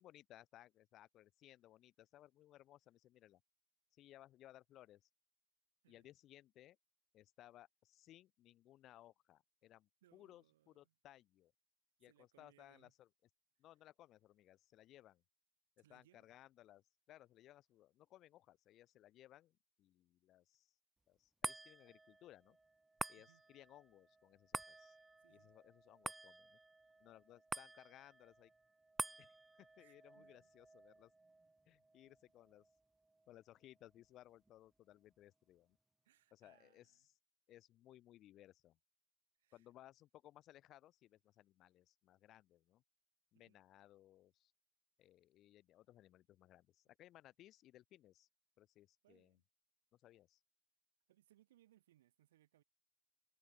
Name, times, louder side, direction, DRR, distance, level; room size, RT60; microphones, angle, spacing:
voice 1, 0.0-3.4 3.9-5.1 5.9-6.8 7.1-11.5 12.0-13.1 13.6-15.2 15.9-20.7 21.1-22.6 23.1-25.0 25.3-26.6 27.0-28.5 29.2-31.1 31.7-32.6 33.3-35.8 36.3-37.1 37.5-38.8 39.5-42.8 43.3-44.5 45.0-48.3 48.6-49.4 49.9-50.4, left 14 dB, 55° left, 0.6 m, -63 dB
voice 2, 10.0-10.9 12.0-12.9 15.8-16.3 23.2-23.4 25.2-25.5 29.8-30.5 36.0-37.1 39.4-39.7 43.3-43.6 49.0-49.4 51.1-52.6, right 14 dB, 75° right, 2.2 m, -72 dB
sound 1, 21.4-34.0 34.5-34.6, right 2 dB, 15° right, 0.3 m, -50 dB
figure-of-eight pair, 60°, 0 cm